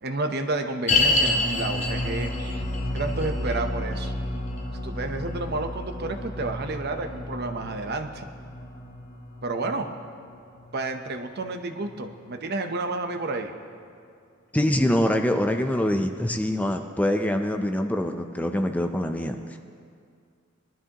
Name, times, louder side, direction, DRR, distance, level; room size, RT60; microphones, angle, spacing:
voice 1, 0.0-2.6 2.9-4.1 4.8-8.2 9.4-9.9 10.7-13.5, right 2 dB, 55° right, 6 dB, 0.9 m, -30 dB
sound 1, 0.9-12.2 12.4-12.5 13.2-13.3, left 2 dB, 35° left, 1.1 m, -29 dB
voice 2, 14.5-19.6, left 1 dB, 5° left, 5 dB, 0.5 m, -24 dB
20.5 x 12.0 x 3.0 m, 2.3 s
head